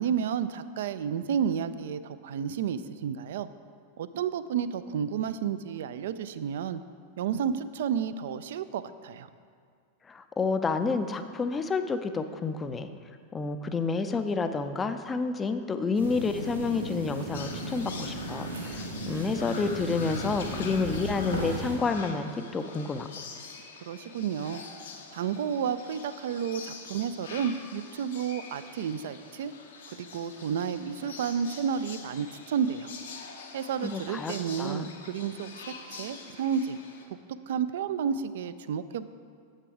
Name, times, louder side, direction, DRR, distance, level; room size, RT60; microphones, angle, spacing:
voice 1, 0.0-3.5 4.0-6.8 7.2-9.3 23.8-24.6 25.1-29.5 29.9-32.9 33.5-36.8 37.5-39.1, right 7 dB, 60° right, 13 dB, 0.3 m, -31 dB
voice 2, 10.1-12.9 13.3-23.1 33.8-34.9, left 4 dB, 20° left, 9 dB, 0.4 m, -29 dB
sound 1, 15.9-21.8, right 1 dB, 80° right, 1.4 m, -35 dB
sound 2, 17.3-37.1, left 4 dB, 65° left, 0.8 m, -45 dB
7.6 x 6.5 x 4.8 m, 2.2 s
figure-of-eight pair, 90°, 0 cm